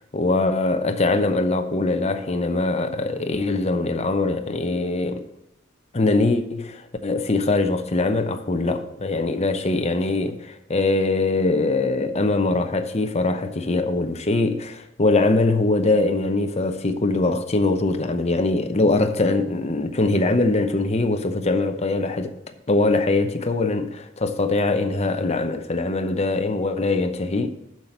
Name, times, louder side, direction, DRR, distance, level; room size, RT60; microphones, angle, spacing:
voice 1, 0.1-5.2 5.9-22.4 22.7-27.5, left 2 dB, 35° left, 0.8 m, -22 dB
7.5 x 5.9 x 7.7 m
head